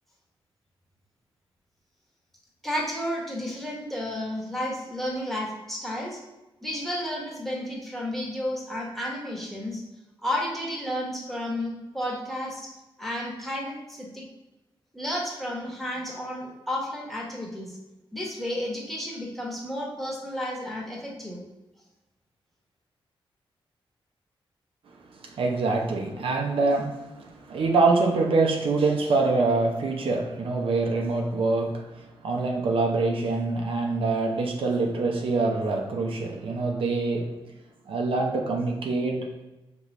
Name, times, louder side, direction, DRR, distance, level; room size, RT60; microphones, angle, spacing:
voice 1, 2.6-6.2 6.6-9.8 10.2-12.7 13.0-14.2 14.9-17.8 18.1-21.4, left 1 dB, ahead, -3 dB, 1.1 m, -32 dB
voice 2, 25.1-37.3 37.9-39.4, right 3 dB, 70° right, 1 dB, 0.7 m, -25 dB
5.3 x 3.0 x 3.1 m, 1.0 s
wide cardioid pair, 110°, 10 cm